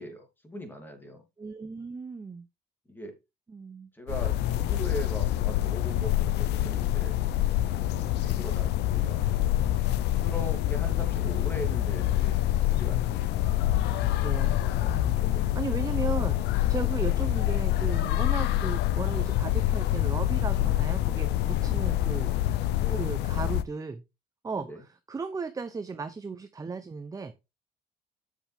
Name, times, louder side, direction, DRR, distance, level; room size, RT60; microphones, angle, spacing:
voice 1, 0.0-1.2 2.9-3.2 3.9-7.2 7.8-9.3 10.1-13.3 15.1-15.5 22.8-23.0 24.5-24.8, equal, 10° left, 4 dB, 3.1 m, -40 dB
voice 2, 1.4-2.5 3.5-3.9 13.9-22.4 23.0-24.0 24.4-27.4, right 4 dB, 20° right, 9 dB, 0.8 m, -36 dB
sound 1, 4.1-23.6, left 14 dB, 85° left, 0.7 m, -26 dB
8.2 x 6.9 x 3.6 m, 0.24 s
cardioid pair, 110°, 17 cm